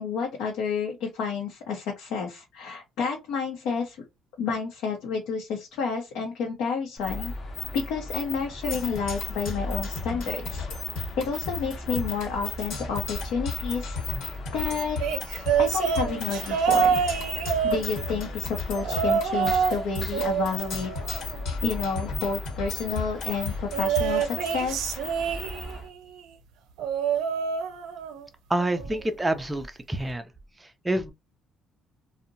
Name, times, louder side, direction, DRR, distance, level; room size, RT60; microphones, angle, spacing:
voice 1, 0.0-4.0 4.4-7.3 7.7-10.7 11.2-14.0 14.5-15.0 15.6-17.0 17.3-20.9 21.6-25.0, left 5 dB, 85° left, 0.7 m, -30 dB
sound 1, 7.0-25.9, left 2 dB, 30° left, 0.7 m, -37 dB
Percussion, 8.7-24.7, left 4 dB, 65° left, 1.1 m, -36 dB
sound 2, 15.0-18.3 18.8-19.8 20.1-21.7 23.7-25.9 26.8-28.3 28.6-29.0 30.1-30.2, right 7 dB, 80° right, 0.4 m, -27 dB
voice 2, 28.5-30.3 30.6-31.1, right 1 dB, 10° right, 0.3 m, -28 dB
2.7 x 2.0 x 2.5 m
cardioid pair, 160°, 0 cm